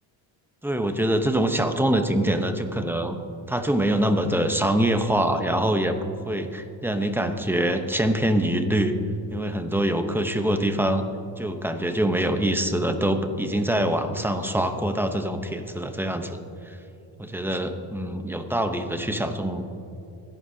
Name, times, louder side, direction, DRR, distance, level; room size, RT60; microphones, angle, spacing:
voice 1, 0.6-3.2 3.5-8.9 9.3-11.0 11.4-16.4 16.7-16.8 17.2-19.6, right 1 dB, 5° right, 6 dB, 0.8 m, -24 dB
22.0 x 11.5 x 2.8 m, 2.8 s
cardioid pair, 125°, 50 cm